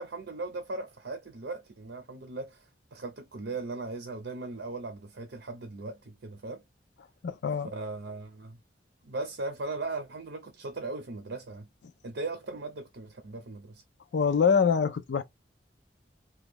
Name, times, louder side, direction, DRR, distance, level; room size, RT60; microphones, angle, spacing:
voice 1, 0.0-6.6 7.6-8.6 9.0-11.7 12.0-13.8, right 3 dB, 75° right, 0.7 m, -38 dB
voice 2, 7.2-7.7 14.1-15.2, left 6 dB, 90° left, 0.4 m, -24 dB
3.0 x 2.3 x 3.4 m
head